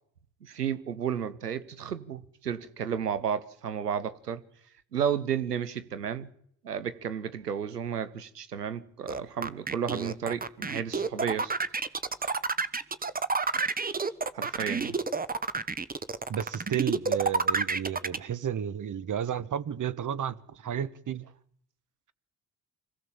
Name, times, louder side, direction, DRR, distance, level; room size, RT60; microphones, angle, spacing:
voice 1, 0.4-4.4 4.9-6.3 6.6-11.5 12.2-12.3 13.5-13.7 14.3-15.0, right 8 dB, 90° right, 1.0 m, -32 dB
sound 1, 9.1-18.2, right 4 dB, 20° right, 1.3 m, -29 dB
voice 2, 16.3-21.3, right 9 dB, 40° right, 1.4 m, -32 dB
25.5 x 16.0 x 7.3 m
figure-of-eight pair, 45°, 46 cm